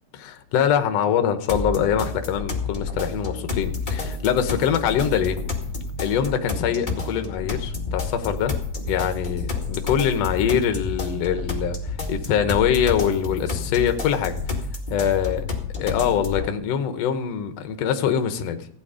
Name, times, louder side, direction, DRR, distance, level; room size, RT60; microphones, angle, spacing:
voice 1, 0.1-5.4 6.0-8.5 8.9-14.4 14.9-15.5 15.8-18.7, left 8 dB, 65° left, 1.9 m, -23 dB
sound 1, 1.5-16.5, left 4 dB, 20° left, 1.4 m, -30 dB
15.5 x 9.8 x 5.0 m
omnidirectional pair, 3.9 m